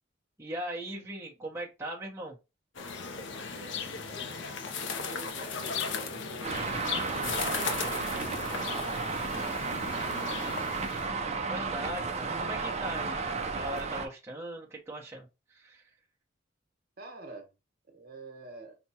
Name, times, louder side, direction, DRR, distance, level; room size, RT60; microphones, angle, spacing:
voice 1, 0.4-2.4 10.9-15.9, right 1 dB, 15° right, -3 dB, 0.9 m, -40 dB
sound 1, 2.7-11.0, left 5 dB, 65° left, 0.6 m, -36 dB
voice 2, 3.3-4.4 4.8-6.6 7.0-10.1 12.1-12.5 17.0-17.5 17.9-18.8, right 2 dB, 50° right, 3 dB, 1.2 m, -48 dB
Traffic noise roadway noise, 6.4-14.1, right 4 dB, 35° right, 0.5 m, -33 dB
5.9 x 2.3 x 2.8 m, 0.27 s
head